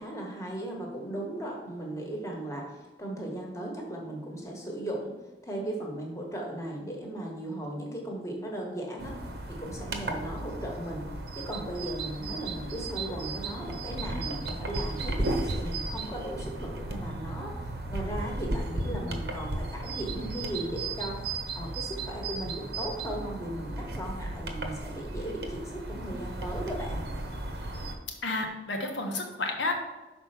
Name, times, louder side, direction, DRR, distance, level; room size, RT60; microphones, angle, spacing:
voice 1, 0.0-5.1 5.4-9.1 9.5-11.0 11.4-17.5 17.9-27.0, right 1 dB, 15° left, -1 dB, 1.3 m, -37 dB
sound 1, 9.0-28.0, right 2 dB, 55° right, 0.9 m, -35 dB
voice 2, 28.2-29.7, left 2 dB, 80° left, 3 dB, 1.2 m, -31 dB
6.1 x 4.4 x 5.8 m, 1.1 s
head